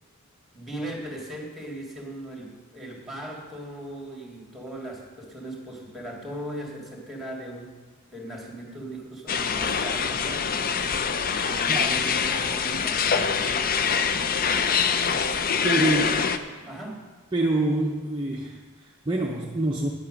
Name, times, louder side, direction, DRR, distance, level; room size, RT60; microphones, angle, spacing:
voice 1, 0.5-7.7 8.1-10.5 11.4-13.4 15.1-15.3 15.8-17.0, right 1 dB, ahead, -1 dB, 2.2 m, -38 dB
sound 1, 9.3-16.4, left 6 dB, 40° left, 0.5 m, -24 dB
voice 2, 11.7-12.1 15.6-16.2 17.3-19.9, right 2 dB, 20° right, 0 dB, 0.7 m, -26 dB
9.8 x 8.6 x 6.3 m, 1.4 s
head